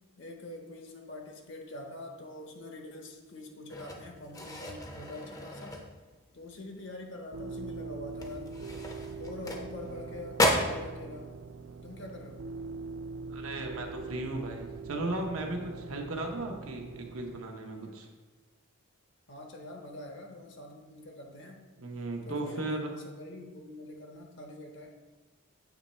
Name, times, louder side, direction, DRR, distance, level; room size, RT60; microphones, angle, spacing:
voice 1, 0.2-5.8 6.3-8.7 9.1-11.4 11.8-12.5 19.3-21.6 22.2-24.9, left 2 dB, 55° left, 2 dB, 0.7 m, -45 dB
sound 1, 3.7-6.3 6.7-7.0 7.4-7.5 8.1-10.0 10.3-10.8, left 1 dB, 15° left, 0.5 m, -33 dB
sound 2, 7.3-17.4, right 4 dB, 70° right, 0.4 m, -42 dB
voice 2, 13.3-18.1 21.8-22.9, right 2 dB, 85° right, 3 dB, 0.8 m, -36 dB
7.1 x 3.1 x 4.2 m, 1.3 s
head